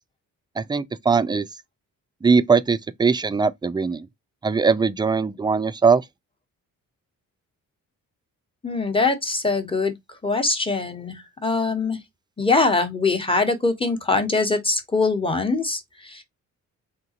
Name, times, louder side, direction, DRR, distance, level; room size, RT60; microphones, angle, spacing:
voice 1, 0.6-1.5 2.2-4.1 4.4-6.0, right 5 dB, 15° right, 0.3 m, -20 dB
voice 2, 8.6-9.9 10.2-12.0 12.4-16.2, left 3 dB, 15° left, 1.0 m, -23 dB
3.7 x 2.9 x 2.8 m
cardioid pair, 80°, 34 cm